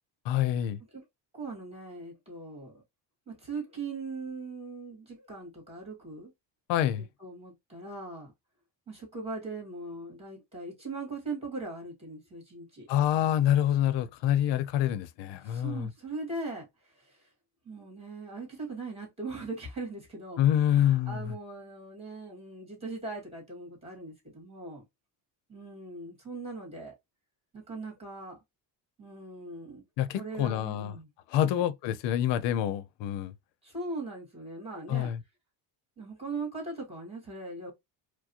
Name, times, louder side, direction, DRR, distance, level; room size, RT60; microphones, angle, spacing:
voice 1, 0.3-0.8 6.7-7.1 12.9-15.9 20.4-21.3 30.0-30.9 31.3-33.3 34.9-35.2, left 11 dB, 70° left, 0.6 m, -26 dB
voice 2, 1.3-2.8 3.3-6.3 7.2-8.3 8.9-12.9 15.4-17.3 17.7-24.8 25.5-26.9 27.5-28.4 29.0-29.8 30.1-31.1 31.4-31.6 33.6-35.1 36.0-37.7, right 3 dB, 15° right, 1.8 m, -40 dB
4.6 x 2.0 x 2.8 m
cardioid pair, 150°, 44 cm